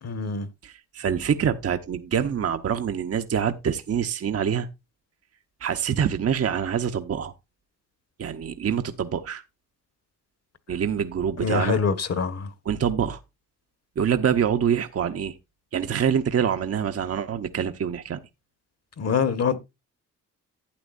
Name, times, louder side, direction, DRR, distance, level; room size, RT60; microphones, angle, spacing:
voice 1, 0.0-0.5 11.4-12.5 19.0-19.6, left 5 dB, 50° left, 1.4 m, -24 dB
voice 2, 0.6-4.7 5.6-7.3 8.2-9.4 10.7-11.8 12.6-13.2 14.0-15.3 15.7-18.2, right 8 dB, 45° right, 0.9 m, -25 dB
11.5 x 8.5 x 2.5 m
cardioid pair, 75°, 33 cm